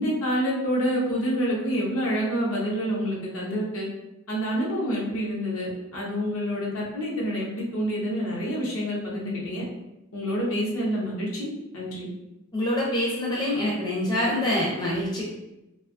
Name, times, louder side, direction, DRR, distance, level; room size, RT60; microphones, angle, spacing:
voice 1, 0.0-3.9 4.3-9.6 10.1-12.1, equal, 70° left, -4 dB, 0.7 m, -27 dB
voice 2, 12.5-15.2, left 1 dB, 20° left, -5 dB, 0.5 m, -25 dB
2.6 x 2.3 x 2.5 m, 0.93 s
head